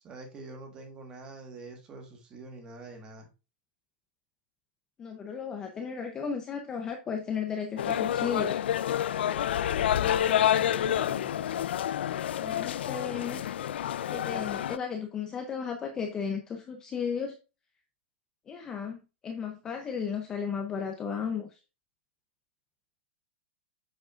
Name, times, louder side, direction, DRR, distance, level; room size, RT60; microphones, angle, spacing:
voice 1, 0.0-3.3 9.7-11.7, right 2 dB, 15° right, 3 dB, 1.4 m, -47 dB
voice 2, 5.0-8.6 12.4-13.4 14.1-17.4 18.5-21.6, left 6 dB, 10° left, 4 dB, 0.5 m, -34 dB
sound 1, 7.8-14.8, left 10 dB, 80° left, 0.4 m, -28 dB
7.4 x 6.3 x 2.4 m, 0.30 s
supercardioid pair, 180°, 6 cm